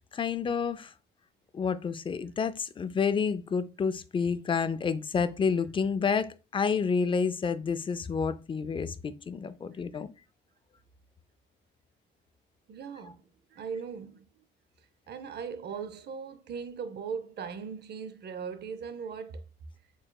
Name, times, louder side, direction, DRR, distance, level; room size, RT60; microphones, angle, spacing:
voice 1, 0.1-0.9 1.5-10.1, left 5 dB, 25° left, 0.4 m, -29 dB
voice 2, 12.7-13.2 13.5-14.3 15.1-19.4, right 6 dB, 55° right, 0.6 m, -39 dB
4.7 x 3.2 x 2.2 m
cardioid pair, 90°, 20 cm